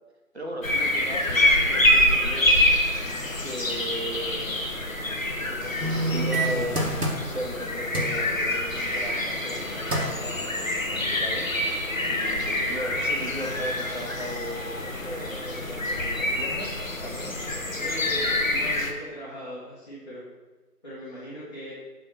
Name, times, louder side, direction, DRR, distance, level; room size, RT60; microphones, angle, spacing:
voice 1, 0.3-2.6 3.4-4.6 5.5-11.5 12.1-17.4, equal, 45° right, 1 dB, 1.1 m, -37 dB
sound 1, 0.6-18.9, left 1 dB, 55° left, 1.0 m, -26 dB
sound 2, 5.8-7.6 7.9-8.2 9.5-9.6 9.9-10.2 10.8-10.9, right 1 dB, 75° right, 1.7 m, -27 dB
voice 2, 17.7-20.2 20.8-21.7, right 1 dB, 25° left, -11 dB, 1.4 m, -39 dB
6.8 x 3.9 x 5.9 m, 1.3 s
figure-of-eight pair, 170°, 47 cm